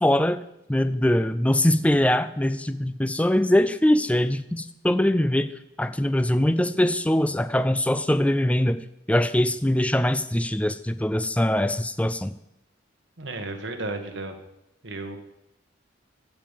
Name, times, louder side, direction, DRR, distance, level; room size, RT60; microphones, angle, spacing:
voice 1, 0.0-0.4 0.7-5.5 5.8-8.8 9.1-12.3, left 1 dB, 5° left, 12 dB, 0.4 m, -22 dB
voice 2, 13.2-14.4 14.8-15.2, right 2 dB, 70° right, 5 dB, 1.7 m, -33 dB
15.0 x 5.3 x 7.4 m, 0.87 s
head